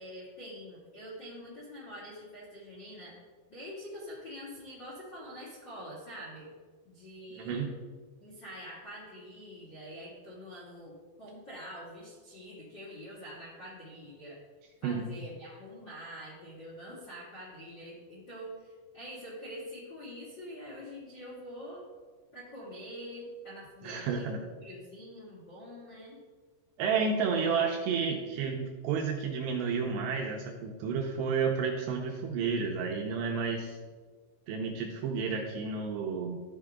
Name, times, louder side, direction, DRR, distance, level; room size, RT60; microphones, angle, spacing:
voice 1, 0.0-3.1 3.5-6.5 6.8-7.7 8.2-14.4 14.8-21.8 22.3-26.2, equal, 50° left, -7 dB, 1.3 m, -45 dB
voice 2, 7.4-7.7 14.8-15.0 23.8-24.4 26.8-33.8 34.5-36.4, right 5 dB, 80° right, 1 dB, 2.6 m, -31 dB
13.5 x 4.9 x 3.5 m, 1.5 s
omnidirectional pair, 5.5 m